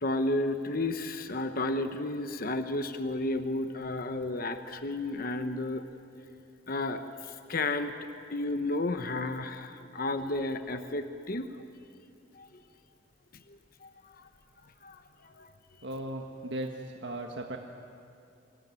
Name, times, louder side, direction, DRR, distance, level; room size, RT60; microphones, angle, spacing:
voice 1, 0.0-5.9 6.7-11.5 12.3-12.6 13.5-14.3 14.8-15.5, left 2 dB, 55° left, 8 dB, 1.1 m, -33 dB
voice 2, 15.8-17.6, right 1 dB, 75° right, 2 dB, 1.5 m, -37 dB
26.5 x 22.5 x 9.6 m, 2.6 s
head